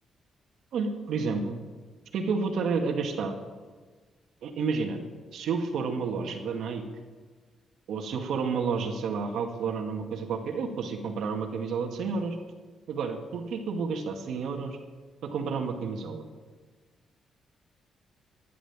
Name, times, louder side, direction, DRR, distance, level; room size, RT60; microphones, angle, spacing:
voice 1, 0.7-1.6 2.1-3.4 4.4-5.0 5.3-6.8 7.9-12.4 12.9-14.8 15.2-16.3, right 5 dB, 75° right, 3 dB, 2.1 m, -30 dB
14.5 x 11.0 x 7.4 m, 1.4 s
cardioid pair, 140°, 0 cm